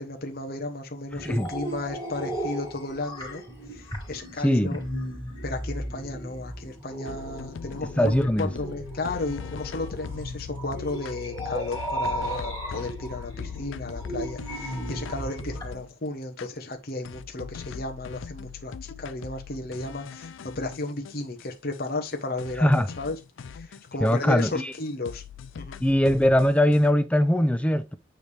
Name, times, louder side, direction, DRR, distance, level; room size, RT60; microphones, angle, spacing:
voice 1, 0.0-3.4 3.7-4.8 5.4-8.1 8.4-23.2 23.4-25.2 25.6-25.8, left 2 dB, 50° left, 1.0 m, -34 dB
sound 1, 1.1-15.7, right 1 dB, 20° left, 2.4 m, -36 dB
voice 2, 4.4-4.8 8.0-8.5 22.6-22.9 24.0-24.7 25.8-28.0, equal, 5° left, 0.4 m, -21 dB
sound 2, 7.1-15.9 16.4-16.5 17.0-21.5 21.7-21.8 22.1-22.2 22.4-24.8 25.1-26.8, left 6 dB, 75° left, 0.4 m, -40 dB
9.0 x 3.3 x 3.3 m
head